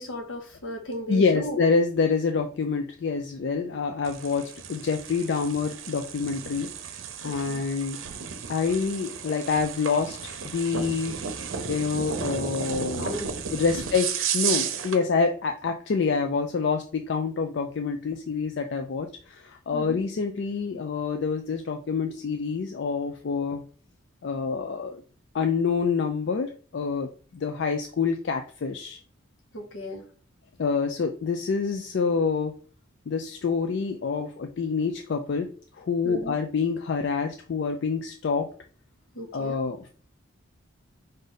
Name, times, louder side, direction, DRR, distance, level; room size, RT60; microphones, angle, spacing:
voice 1, 0.0-1.6 7.2-7.6 13.0-13.4 19.7-20.0 29.5-30.0 36.0-36.4 39.1-39.6, equal, 80° left, 3 dB, 1.1 m, -36 dB
voice 2, 1.1-6.7 7.2-8.0 8.5-11.1 11.7-13.1 13.5-23.6 24.2-25.0 25.3-29.0 30.6-32.5 33.1-38.5 39.3-39.9, left 5 dB, 60° left, 5 dB, 0.4 m, -27 dB
sound 1, 4.0-15.0, right 7 dB, 80° right, 0.6 m, -33 dB
5.0 x 2.6 x 4.0 m, 0.42 s
head